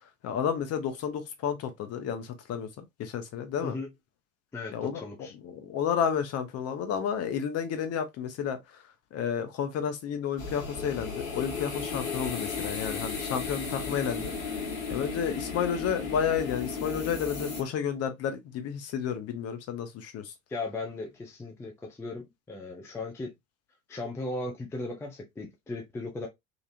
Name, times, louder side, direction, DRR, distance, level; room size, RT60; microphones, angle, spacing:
voice 1, 0.2-3.7 4.7-5.0 5.4-8.6 9.1-14.3 14.9-20.3, left 8 dB, 35° left, 0.9 m, -31 dB
voice 2, 3.6-3.9 4.5-5.3 20.5-23.3 23.9-26.3, left 2 dB, 5° left, 0.5 m, -37 dB
sound 1, 10.4-17.6, left 4 dB, 65° left, 1.2 m, -35 dB
3.4 x 2.4 x 2.5 m
figure-of-eight pair, 70°, 43 cm